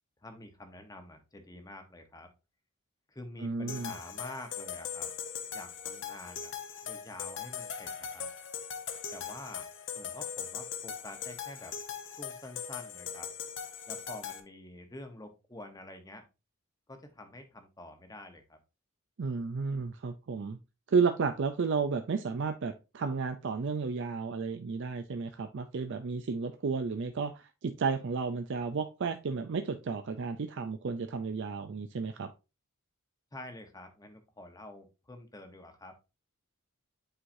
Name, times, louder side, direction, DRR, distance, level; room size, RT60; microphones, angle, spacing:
voice 1, 0.2-2.3 3.1-5.1 5.5-6.5 6.8-8.3 9.1-9.7 9.9-11.8 12.2-13.3 13.9-16.3 16.9-18.6 33.3-36.0, left 1 dB, 15° left, 6 dB, 0.9 m, -47 dB
voice 2, 3.4-3.9 19.2-20.6 20.9-32.3, right 5 dB, 55° right, 8 dB, 0.4 m, -32 dB
sound 1, 3.7-14.4, left 7 dB, 60° left, 0.9 m, -40 dB
8.8 x 4.7 x 2.6 m, 0.28 s
head